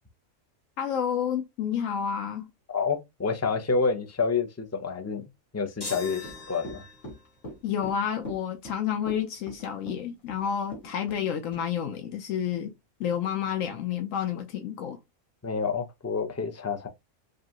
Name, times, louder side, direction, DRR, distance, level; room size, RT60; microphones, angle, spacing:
voice 1, 0.8-2.5 7.6-12.7 13.0-15.0, left 8 dB, 80° left, 1.0 m, -30 dB
voice 2, 2.7-5.2 5.5-6.8 15.4-16.9, left 5 dB, 25° left, 0.3 m, -28 dB
sound 1, 5.8-7.3, left 3 dB, 50° left, 2.0 m, -40 dB
Run / Walk footsteps, 6.2-11.3 11.5-11.6, right 1 dB, 65° left, 2.9 m, -42 dB
5.1 x 2.3 x 2.9 m
omnidirectional pair, 1.3 m